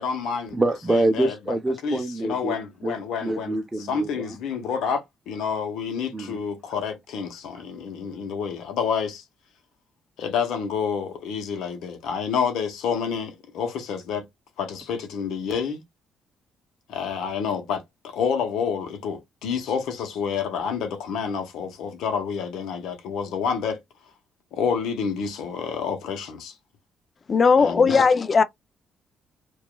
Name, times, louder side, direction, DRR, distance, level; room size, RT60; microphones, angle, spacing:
voice 1, 0.0-0.6 0.9-1.4 1.8-3.6 3.9-9.2 10.2-14.2 14.6-15.8 16.9-23.8 24.5-26.5 27.6-27.9, left 6 dB, 85° left, 0.8 m, -28 dB
voice 2, 0.5-2.6 2.8-2.9 3.2-4.4 6.1-6.4, right 1 dB, 15° right, 0.6 m, -25 dB
voice 3, 27.3-28.4, left 5 dB, 40° left, 0.4 m, -17 dB
2.8 x 2.3 x 2.2 m
cardioid pair, 90°, 0 cm